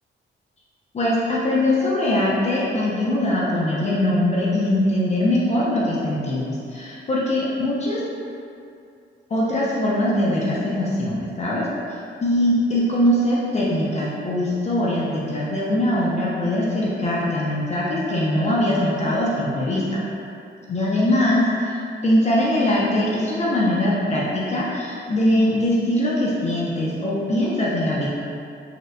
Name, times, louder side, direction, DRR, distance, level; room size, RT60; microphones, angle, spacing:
voice 1, 0.9-8.0 9.3-11.7 12.2-20.0 20.7-28.1, left 1 dB, 35° left, -6 dB, 0.4 m, -22 dB
4.1 x 2.1 x 2.5 m, 2.5 s
wide cardioid pair, 140°, 20 cm